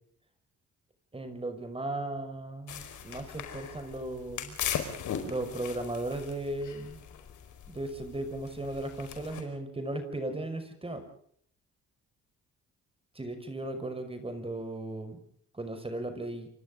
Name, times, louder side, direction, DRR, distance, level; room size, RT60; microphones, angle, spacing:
voice 1, 1.1-4.6 5.2-7.0 7.7-11.1 13.2-15.2 15.5-16.5, right 2 dB, 20° right, 7 dB, 5.7 m, -36 dB
sound 1, 2.7-9.4, left 8 dB, 75° left, 5.0 m, -39 dB
29.5 x 25.0 x 3.8 m, 0.63 s
cardioid pair, 90°, 30 cm